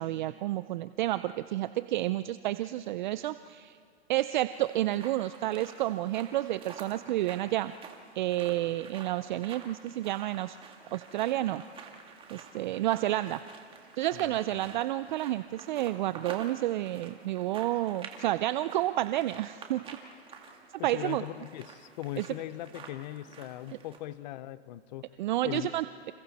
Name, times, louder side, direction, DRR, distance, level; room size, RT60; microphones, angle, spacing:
voice 1, 0.0-3.8 4.1-7.7 8.2-10.6 10.9-11.6 12.3-13.4 14.0-19.8 20.8-21.2 22.2-22.3 25.2-26.1, right 15 dB, 45° right, 13 dB, 0.5 m, -30 dB
sound 1, 4.5-24.0, right 5 dB, 15° right, 2.0 m, -49 dB
voice 2, 14.1-14.7 20.8-25.1 25.4-25.7, left 14 dB, 40° left, 16 dB, 0.8 m, -40 dB
29.0 x 27.5 x 4.2 m, 2.2 s
hypercardioid pair, 145°, 34 cm